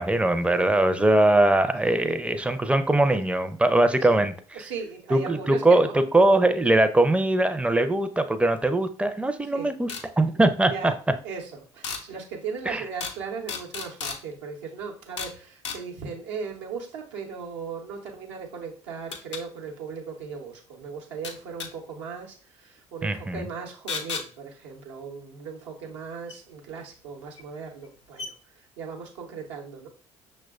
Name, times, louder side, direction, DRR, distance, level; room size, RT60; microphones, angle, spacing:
voice 1, 0.0-4.3 5.1-5.9 6.1-10.9 12.7-12.8 23.0-23.4, right 2 dB, 10° right, 9 dB, 0.5 m, -21 dB
voice 2, 1.9-2.3 4.1-4.2 4.5-6.0 9.5-9.7 10.3-10.9 11.2-29.9, right 5 dB, 75° right, 0 dB, 0.8 m, -37 dB
sound 1, 9.9-10.1 11.8-12.0 13.0-13.2 13.5-14.2 15.2-15.4 15.6-15.8 18.1-18.2 19.1-19.4 21.2-21.7 23.9-24.3 26.3-26.4 27.4-27.5 27.8-27.9 28.2-28.3, left 5 dB, 85° left, 0.4 m, -33 dB
6.0 x 2.2 x 2.4 m, 0.41 s
figure-of-eight pair, 50°, 15 cm